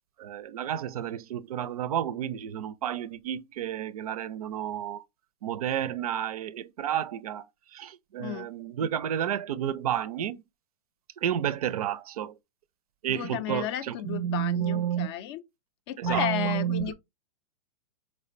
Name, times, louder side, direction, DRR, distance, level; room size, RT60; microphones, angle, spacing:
voice 1, 0.2-5.0 5.4-7.5 7.7-10.4 11.2-12.3 13.0-15.1 16.0-16.9, right 10 dB, 75° right, 0.4 m, -31 dB
voice 2, 13.1-15.4 15.9-16.9, left 11 dB, 45° left, 0.4 m, -33 dB
4.4 x 2.1 x 2.5 m
hypercardioid pair, 125°, 19 cm